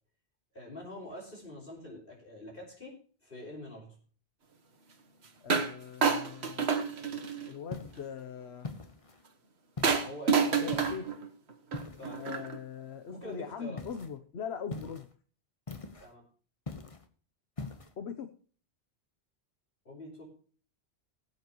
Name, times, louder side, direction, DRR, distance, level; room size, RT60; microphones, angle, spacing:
voice 1, 0.5-2.9 3.2-4.0 9.9-10.9 12.0-12.2 13.1-13.8 16.0-16.2 19.9-20.2, equal, 60° left, -1 dB, 5.6 m, -45 dB
voice 2, 5.4-6.7 7.5-8.7 10.6-11.0 12.1-15.1 18.0-18.3, left 7 dB, 80° left, 8 dB, 1.2 m, -41 dB
sound 1, 5.5-5.7 6.0-7.5 9.8-12.6, right 5 dB, 80° right, 1.6 m, -29 dB
sound 2, 7.7-8.1 8.6-9.2 9.8-10.2 10.7-11.1 11.7-12.2 13.8-14.1 14.7-15.1 15.7-16.1 16.7-17.1 17.6-17.9, left 3 dB, 35° left, 1.2 m, -42 dB
20.5 x 7.9 x 3.1 m, 0.42 s
omnidirectional pair, 1.1 m